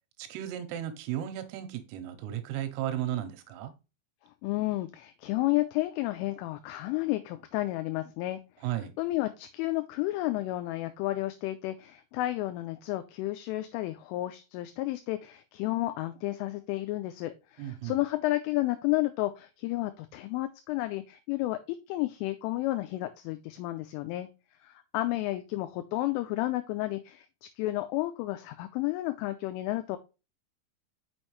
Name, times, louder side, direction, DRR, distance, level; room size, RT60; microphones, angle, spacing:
voice 1, 0.2-3.7 8.6-8.9 17.6-18.0, right 12 dB, 85° right, 3.4 m, -35 dB
voice 2, 4.4-8.4 9.0-24.3 24.6-27.3 27.6-30.0, left 17 dB, 85° left, 3.0 m, -31 dB
6.3 x 6.2 x 3.1 m
omnidirectional pair, 5.8 m